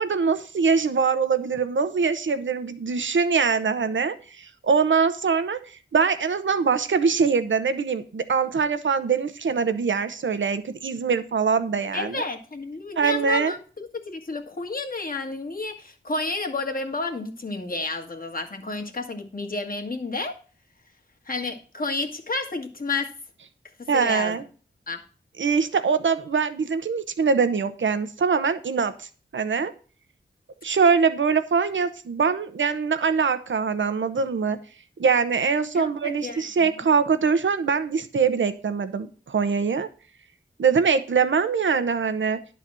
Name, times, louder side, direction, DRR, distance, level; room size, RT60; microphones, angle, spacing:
voice 1, 0.0-5.6 5.9-12.2 13.0-13.5 23.9-24.4 25.4-29.1 29.3-29.7 30.6-34.6 35.0-39.9 40.6-42.4, right 5 dB, 85° right, 11 dB, 0.9 m, -23 dB
voice 2, 11.9-20.3 21.3-23.1 23.9-24.4 24.9-25.0 35.7-36.7, left 3 dB, 50° left, 3 dB, 1.7 m, -31 dB
11.0 x 4.1 x 7.5 m, 0.38 s
wide cardioid pair, 70°, 19 cm